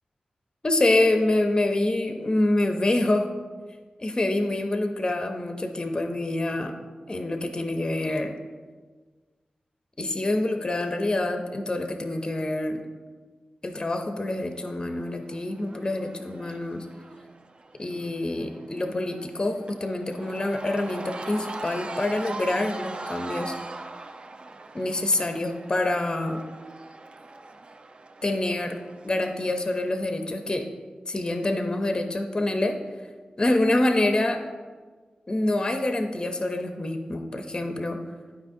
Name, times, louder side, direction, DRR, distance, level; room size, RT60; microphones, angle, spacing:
voice 1, 0.6-3.3 4.0-6.7 7.1-8.3 10.0-12.8 13.6-16.9 17.8-23.5 24.7-26.4 28.2-28.8 29.0-30.7 31.1-32.8 33.4-34.4 35.3-38.0, left 2 dB, 25° left, 5 dB, 0.5 m, -26 dB
Cheering / Crowd, 14.6-29.9, right 2 dB, 35° right, 0.3 m, -41 dB
11.0 x 4.8 x 2.7 m, 1.4 s
wide cardioid pair, 110°, 3 cm